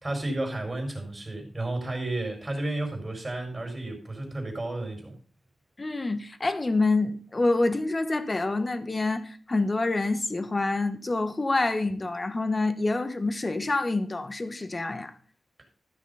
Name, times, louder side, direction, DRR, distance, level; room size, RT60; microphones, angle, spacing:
voice 1, 0.0-5.1, right 2 dB, 20° right, 4.8 m, -32 dB
voice 2, 5.8-15.1, left 2 dB, 25° left, 1.3 m, -27 dB
14.0 x 6.3 x 5.6 m
wide cardioid pair, 105°, 0 cm